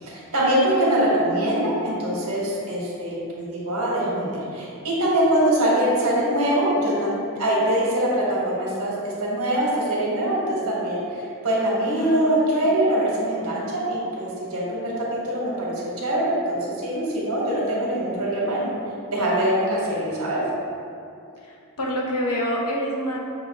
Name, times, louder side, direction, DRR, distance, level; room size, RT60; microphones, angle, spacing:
voice 1, 0.0-18.8 19.1-20.4, right 1 dB, 90° right, -5 dB, 1.2 m, -23 dB
voice 2, 12.0-12.8 19.2-19.3 21.4-23.2, equal, 85° left, -2 dB, 0.8 m, -28 dB
6.3 x 2.4 x 3.4 m, 2.5 s
head